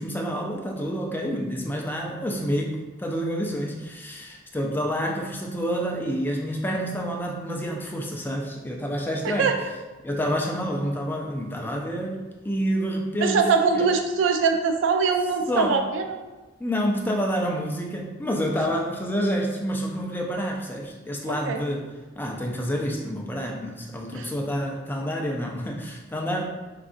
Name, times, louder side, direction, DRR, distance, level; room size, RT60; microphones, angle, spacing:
voice 1, 0.0-9.5 10.0-13.5 13.7-13.9 15.5-15.8 16.6-21.9 22.2-26.4, equal, 10° left, 0 dB, 0.3 m, -28 dB
voice 2, 13.2-16.0 21.3-21.6 24.1-24.3, right 5 dB, 70° right, 5 dB, 0.3 m, -22 dB
3.7 x 2.3 x 2.4 m, 1.2 s
head